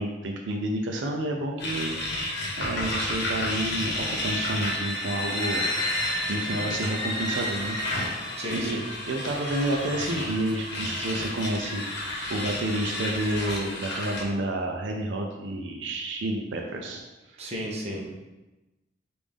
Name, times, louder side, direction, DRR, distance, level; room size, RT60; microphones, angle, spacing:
voice 1, 0.0-1.9 2.6-5.7 6.3-7.8 8.0-8.2 8.5-17.0, right 1 dB, 80° right, 2 dB, 0.5 m, -30 dB
sound 1, 1.6-14.2, left 1 dB, 65° left, 0.9 m, -31 dB
voice 2, 8.4-8.8 17.4-18.1, equal, 35° right, -2 dB, 0.8 m, -33 dB
5.1 x 2.6 x 3.5 m, 1.1 s
head